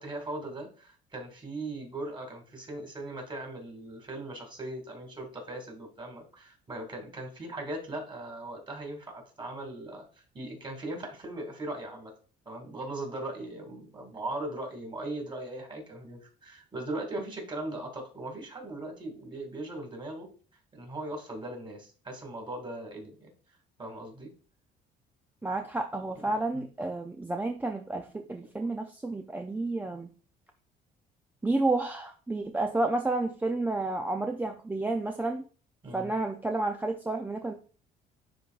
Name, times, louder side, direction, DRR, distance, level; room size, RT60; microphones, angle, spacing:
voice 1, 0.0-12.1 12.5-20.3 20.7-23.3 23.8-24.3 26.5-26.6 35.8-36.1, right 2 dB, 30° right, 2 dB, 2.5 m, -39 dB
voice 2, 25.4-30.1 31.4-35.4 35.9-37.5, right 2 dB, 10° right, 4 dB, 0.5 m, -30 dB
10.5 x 3.8 x 2.4 m, 0.39 s
cardioid pair, 110°, 17 cm